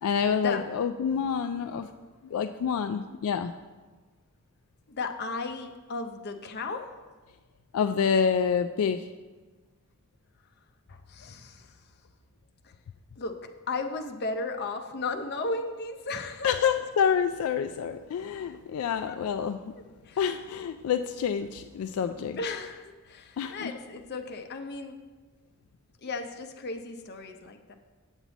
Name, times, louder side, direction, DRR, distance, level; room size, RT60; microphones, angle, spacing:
voice 1, 0.0-1.9 2.2-3.5 7.7-9.1 16.4-19.7 20.2-22.4 23.4-23.7, left 7 dB, 80° left, 8 dB, 0.3 m, -27 dB
voice 2, 4.9-6.9 10.9-11.8 12.6-12.7 13.2-16.5 19.1-19.2 20.0-20.3 22.3-25.0 26.0-27.7, left 3 dB, 50° left, 5 dB, 0.6 m, -35 dB
8.1 x 7.4 x 4.1 m, 1.3 s
head